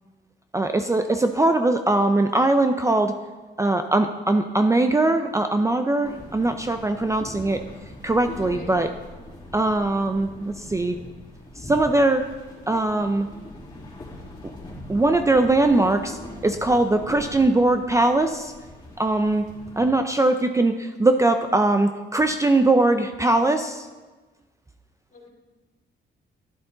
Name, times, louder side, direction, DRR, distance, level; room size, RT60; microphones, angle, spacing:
voice 1, 0.5-3.2 3.6-7.6 8.0-8.9 9.5-11.0 11.6-12.2 12.7-13.3 14.9-16.2 16.4-18.5 19.0-19.4 19.8-23.9, right 2 dB, 15° right, 7 dB, 0.6 m, -21 dB
sound 1, 6.0-19.9, left 1 dB, 25° left, 3.5 m, -41 dB
voice 2, 8.3-8.8 11.0-11.1 25.1-25.3, left 2 dB, 40° left, -1 dB, 2.9 m, -43 dB
11.5 x 9.3 x 3.9 m, 1.2 s
cardioid pair, 90°, 20 cm